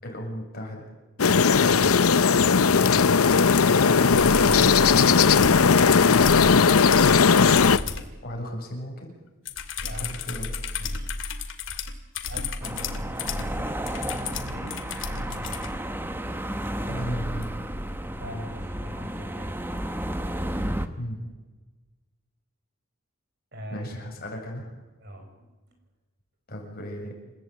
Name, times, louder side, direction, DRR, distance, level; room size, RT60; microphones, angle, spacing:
voice 1, 0.0-0.9 1.6-1.9 3.4-5.1 8.2-9.1 10.0-10.5 16.9-17.6 21.0-21.3 23.7-24.7 26.5-27.3, equal, 45° left, 1 dB, 7.2 m, -35 dB
sound 1, 1.2-7.8, left 5 dB, 90° left, 0.7 m, -18 dB
sound 2, 4.1-8.1 9.5-15.7 17.4-17.5, left 5 dB, 60° left, 2.4 m, -33 dB
voice 2, 9.8-10.3 10.8-11.1 12.3-13.7 14.0-15.7 18.2-19.6 23.5-23.9 25.0-25.3 25.7-25.8, equal, 50° right, 5 dB, 5.8 m, -41 dB
sound 3, 12.6-20.9, right 1 dB, 10° right, 1.2 m, -32 dB
28.5 x 15.5 x 9.0 m, 1.2 s
head